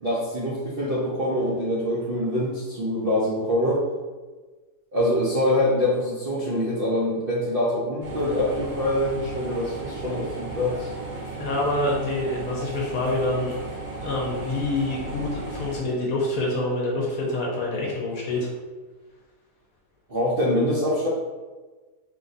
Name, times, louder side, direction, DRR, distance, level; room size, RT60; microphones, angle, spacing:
voice 1, 0.0-3.8 4.9-10.9 20.1-21.1, left 1 dB, 55° right, -8 dB, 0.6 m, -24 dB
sound 1, 8.0-15.8, right 3 dB, 90° right, 1.7 m, -35 dB
voice 2, 11.3-13.5 14.0-18.5, left 2 dB, 65° left, -3 dB, 1.1 m, -26 dB
3.5 x 3.1 x 2.7 m, 1.3 s
omnidirectional pair, 1.8 m